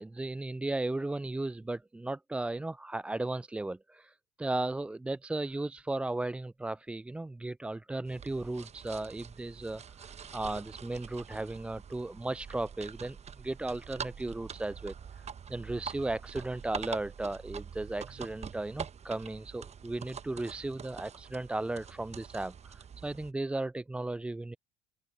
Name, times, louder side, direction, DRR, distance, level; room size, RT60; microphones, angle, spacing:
voice 1, 0.0-13.2 13.4-14.9 15.5-24.6, right 2 dB, 5° right, 0.3 m, -35 dB
sound 1, 8.0-23.3, right 7 dB, 30° right, 1.2 m, -45 dB
open air
hypercardioid pair, 65°, 21 cm